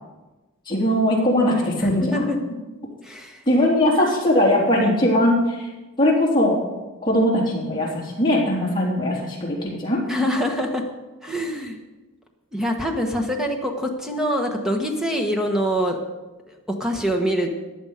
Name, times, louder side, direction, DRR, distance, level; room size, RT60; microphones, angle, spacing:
voice 1, 0.7-2.3 3.5-5.7 6.0-6.6 7.0-10.0, left 1 dB, 20° left, -4 dB, 3.4 m, -20 dB
voice 2, 1.8-2.4 3.0-3.4 10.1-10.9 11.2-11.8 12.5-16.0 16.7-17.5, equal, ahead, 2 dB, 1.3 m, -24 dB
15.0 x 10.0 x 5.1 m, 1.1 s
head